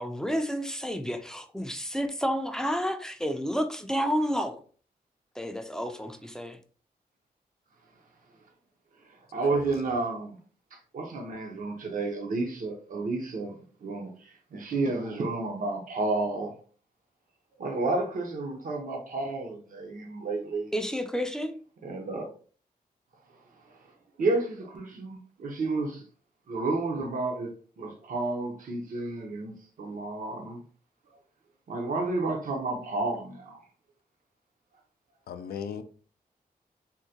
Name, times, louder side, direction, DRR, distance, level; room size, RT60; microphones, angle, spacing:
voice 1, 0.0-4.6 5.4-6.6 20.7-21.6, equal, 5° left, 0.4 m, -30 dB
voice 2, 9.3-10.4 10.7-13.5 13.8-16.5 17.6-20.7 21.8-22.3 24.2-26.0 26.5-27.5 27.8-29.5 29.8-30.6 31.7-33.6, right 3 dB, 60° right, 0.7 m, -31 dB
voice 3, 35.3-35.8, left 7 dB, 85° left, 0.4 m, -37 dB
3.6 x 2.1 x 2.7 m
wide cardioid pair, 115°, 16 cm